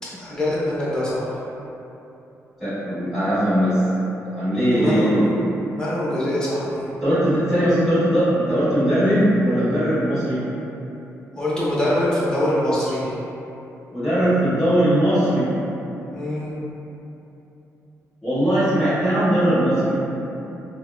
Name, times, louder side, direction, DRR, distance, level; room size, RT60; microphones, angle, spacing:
voice 1, 0.1-1.2 4.7-5.3 5.7-6.9 11.3-13.1 16.1-16.6, left 1 dB, 15° left, -9 dB, 0.7 m, -24 dB
voice 2, 2.6-3.8 4.3-5.3 7.0-10.4 13.9-15.5 18.2-20.0, equal, 5° right, -17 dB, 1.2 m, -19 dB
3.5 x 2.1 x 2.2 m, 2.9 s
cardioid pair, 125°, 6 cm